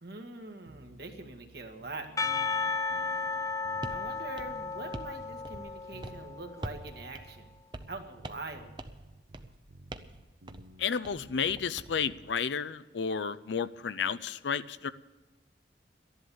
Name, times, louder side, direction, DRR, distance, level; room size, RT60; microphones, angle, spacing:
voice 1, 0.0-2.1 3.9-7.5 7.9-8.7, right 2 dB, 65° right, 4 dB, 1.7 m, -43 dB
sound 1, 0.7-12.5, right 2 dB, 90° right, 0.7 m, -54 dB
Percussion / Church bell, 2.2-6.7, left 4 dB, 20° left, 0.4 m, -34 dB
sound 2, 3.8-4.0 4.4-5.2 5.4-5.8 6.0-6.2 6.6-6.9 7.1-7.3 7.7-8.0 8.2-8.5 8.8-9.0 9.3-9.6 9.9-10.2 10.5-10.7 11.0-11.9, right 2 dB, 25° right, 0.6 m, -43 dB
voice 2, 10.8-14.9, left 6 dB, 85° left, 14 dB, 0.5 m, -32 dB
12.5 x 11.0 x 7.0 m, 1.2 s
head